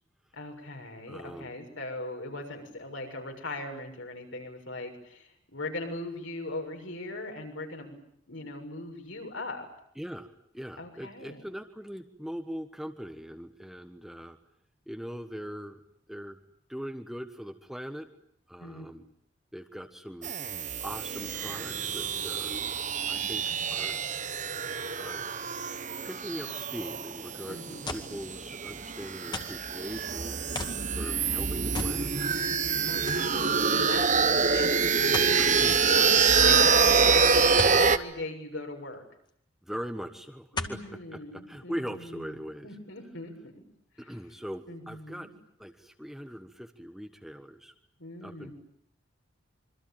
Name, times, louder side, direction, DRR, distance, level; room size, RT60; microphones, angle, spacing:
voice 1, 0.3-8.0 8.3-9.7 10.8-11.4 18.6-18.9 20.8-20.9 27.5-28.2 32.8-36.2 36.4-39.0 40.5-43.6 44.0-44.2 44.7-45.3 48.0-48.5, left 2 dB, 75° left, 3 dB, 7.0 m, -40 dB
voice 2, 1.1-1.5 10.0-14.4 14.9-15.8 16.1-16.4 16.7-18.1 18.5-19.0 19.5-20.3 20.8-22.6 23.1-24.0 25.0-25.2 26.0-32.4 35.1-35.8 39.6-40.8 41.1-42.7 44.0-45.3 45.6-47.7 48.2-48.5, equal, ahead, 6 dB, 1.3 m, -41 dB
sound 1, 20.2-38.0, right 5 dB, 40° right, 1.1 m, -26 dB
sound 2, 27.9-28.2 29.3-29.7 30.5-30.8 31.7-32.0 32.4-32.5 33.1-33.3 35.1-35.4 37.6-37.8 39.3-39.4 40.5-40.9 41.6-41.7, left 2 dB, 20° left, 2.1 m, -35 dB
26.5 x 24.5 x 9.0 m, 0.70 s
head